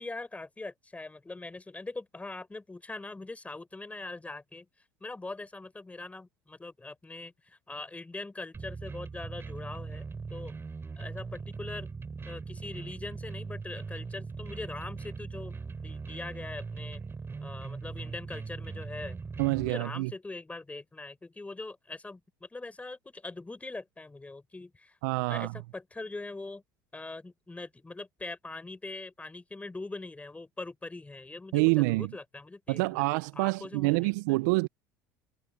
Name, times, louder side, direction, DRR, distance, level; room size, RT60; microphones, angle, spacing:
voice 1, 0.0-4.7 5.0-10.0 10.3-10.6 11.0-11.9 12.2-15.5 15.8-17.0 17.4-19.2 19.6-25.0 25.3-26.6 26.9-34.1, left 2 dB, 15° left, 6.4 m, -42 dB
sound 1, 8.5-19.7, right 4 dB, 20° right, 5.3 m, -40 dB
voice 2, 19.4-20.1 25.0-25.5 31.5-32.1 32.7-34.7, right 25 dB, 70° right, 1.1 m, -27 dB
hypercardioid pair, 80°, 10 cm